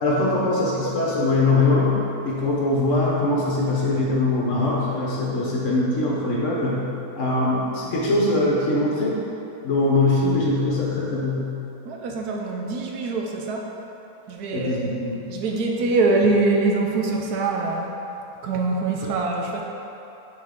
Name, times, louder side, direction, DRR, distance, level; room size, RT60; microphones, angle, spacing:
voice 1, 0.0-6.9 7.2-9.2 9.6-11.6 14.5-15.4, left 2 dB, 55° left, -5 dB, 1.2 m, -22 dB
voice 2, 11.8-13.7 14.3-14.9 15.3-18.0 18.4-19.6, right 3 dB, 75° right, 1 dB, 1.1 m, -23 dB
5.8 x 4.8 x 3.5 m, 2.9 s
omnidirectional pair, 1.7 m